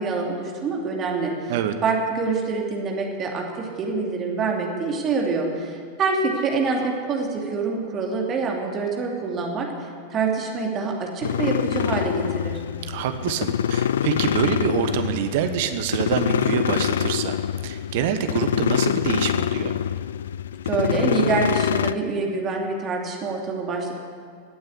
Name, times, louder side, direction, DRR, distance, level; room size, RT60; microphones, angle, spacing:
voice 1, 0.0-1.3 1.8-9.7 10.1-12.6 20.6-23.9, right 4 dB, 30° right, 0 dB, 2.8 m, -26 dB
sound 1, 11.2-21.9, left 9 dB, 65° left, 0.4 m, -25 dB
voice 2, 12.9-19.7, right 9 dB, 50° right, 8 dB, 1.1 m, -26 dB
18.0 x 9.3 x 8.5 m, 2.1 s
figure-of-eight pair, 90°, 0 cm